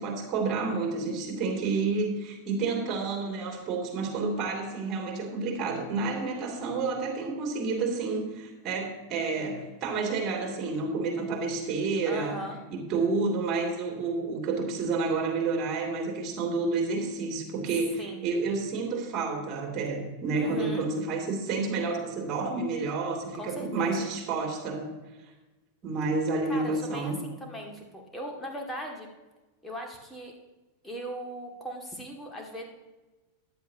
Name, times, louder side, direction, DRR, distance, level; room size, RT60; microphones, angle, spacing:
voice 1, 0.0-12.4 12.7-24.9 25.8-27.2, right 4 dB, 35° right, 2 dB, 2.9 m, -30 dB
voice 2, 12.1-12.6 18.0-18.3 20.3-20.9 23.3-24.1 26.5-29.1 29.6-30.4 30.8-32.6, equal, 5° left, 0 dB, 2.2 m, -38 dB
14.5 x 10.5 x 2.9 m, 1.2 s
figure-of-eight pair, 90°, 0 cm